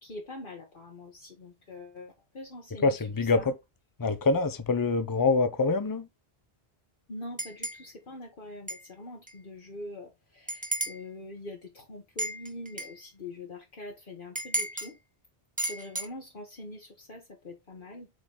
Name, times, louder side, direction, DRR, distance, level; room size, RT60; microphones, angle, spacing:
voice 1, 0.0-3.5 7.1-15.0 15.7-18.1, left 2 dB, 55° left, 1.4 m, -44 dB
voice 2, 2.8-3.5 4.0-6.1, left 3 dB, 25° left, 0.7 m, -25 dB
sound 1, 7.4-7.9 8.7-8.8 9.3-9.4 10.5-11.0 12.2-13.0 14.4-14.9 15.6-16.1, right 1 dB, 10° right, 1.1 m, -33 dB
7.9 x 3.9 x 3.9 m
omnidirectional pair, 1.0 m